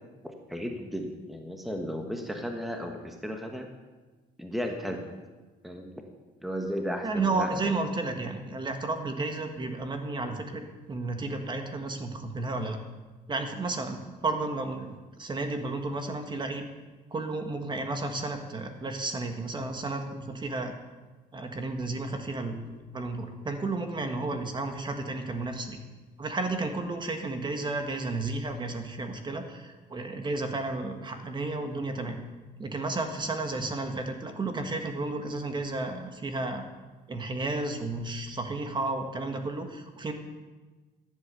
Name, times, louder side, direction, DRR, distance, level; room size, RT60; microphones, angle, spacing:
voice 1, 0.2-3.7 4.4-5.1 5.6-5.9 6.4-7.7, equal, ahead, 3 dB, 1.3 m, -35 dB
voice 2, 7.0-10.6 10.9-12.8 13.3-16.7 17.1-20.7 21.3-25.8 26.2-32.2 32.6-36.6 37.1-40.1, right 2 dB, 25° right, 5 dB, 1.5 m, -32 dB
13.5 x 8.2 x 6.8 m, 1.3 s
cardioid pair, 110°, 17 cm